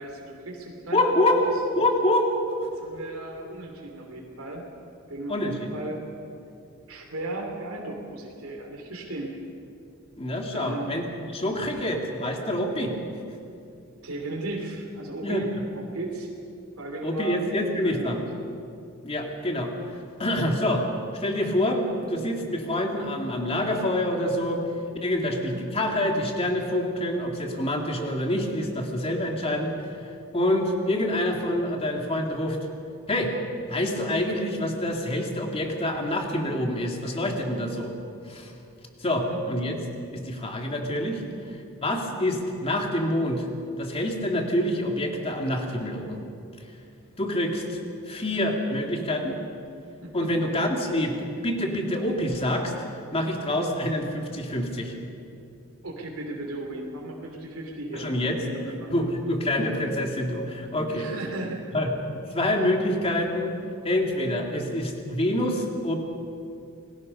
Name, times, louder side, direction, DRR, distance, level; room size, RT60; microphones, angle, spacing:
voice 1, 0.0-1.0 1.3-1.5 2.7-4.7 5.1-6.0 6.9-9.4 10.5-10.9 11.4-11.5 14.0-16.3 16.8-17.4 17.8-18.2 25.2-25.6 39.3-39.4 50.0-50.3 55.8-58.9 60.9-61.9, right 2 dB, 80° right, 1 dB, 3.1 m, -36 dB
voice 2, 0.9-1.4 1.8-2.3 5.3-5.6 10.2-12.9 15.2-15.4 17.0-18.2 19.0-19.7 20.2-20.9 21.2-24.6 25.0-29.7 30.3-32.6 33.1-33.3 33.7-37.9 38.3-38.5 39.0-39.8 40.1-41.2 41.8-43.5 43.8-46.2 47.2-47.8 48.1-49.4 50.1-51.2 51.4-52.7 53.1-54.9 57.9-58.4 58.9-61.1 61.7-63.5 63.8-65.9, left 1 dB, 30° left, 2 dB, 2.4 m, -26 dB
28.5 x 20.0 x 5.4 m, 2.6 s
head